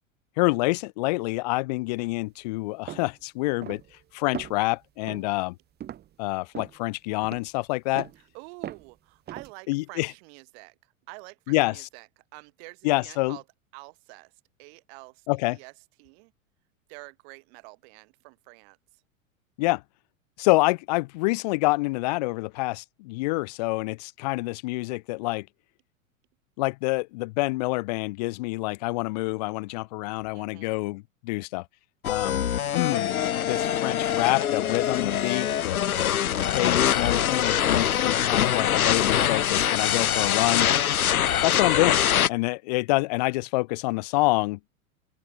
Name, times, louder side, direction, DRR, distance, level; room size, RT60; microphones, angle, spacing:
voice 1, 0.4-3.8 4.1-5.6 6.2-8.1 9.7-10.1 11.5-11.9 12.8-13.4 15.3-15.6 19.6-19.8 20.4-25.5 26.6-31.7 32.0-36.2 36.5-40.7 41.4-42.0 42.3-44.6, left 23 dB, 30° left, 0.4 m, -27 dB
sound 1, 2.9-3.1 3.6-4.0 4.3-4.7 5.1-5.3 5.8-6.1 6.5-6.8 7.2-7.5 8.0-8.2 8.6-8.9 9.3-9.5, right 11 dB, 25° right, 1.3 m, -39 dB
voice 2, 8.2-13.4 13.7-14.3 14.6-15.7 16.0-16.3 16.9-19.0 30.3-30.8, right 33 dB, 45° right, 3.9 m, -48 dB
sound 2, 32.0-42.3, left 10 dB, 85° left, 0.5 m, -24 dB
open air
figure-of-eight pair, 90°, 42 cm